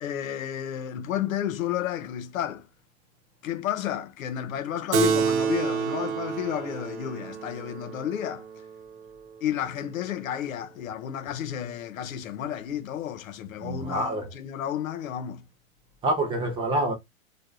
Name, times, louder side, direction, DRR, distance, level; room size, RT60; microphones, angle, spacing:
voice 1, 0.0-2.7 3.4-8.5 9.4-15.4, left 10 dB, 85° left, 0.9 m, -31 dB
Keyboard (musical), 4.9-9.8, right 7 dB, 60° right, 0.7 m, -29 dB
voice 2, 13.6-14.2 16.0-17.0, right 1 dB, 15° right, 0.3 m, -26 dB
4.6 x 2.4 x 2.5 m
hypercardioid pair, 135°, 40 cm